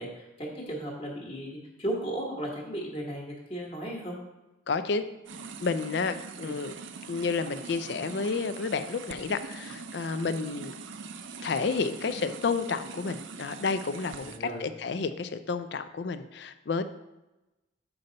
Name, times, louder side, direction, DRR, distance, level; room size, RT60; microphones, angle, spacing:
voice 1, 0.0-4.1 6.4-6.7 14.2-14.6, right 1 dB, 30° left, -2 dB, 1.3 m, -36 dB
voice 2, 4.7-5.1 5.6-6.7 7.1-10.7 11.4-16.8, left 4 dB, 60° left, 11 dB, 0.4 m, -31 dB
sound 1, 5.3-14.4, right 5 dB, 75° right, 0.5 m, -43 dB
7.0 x 5.3 x 3.9 m, 1.0 s
head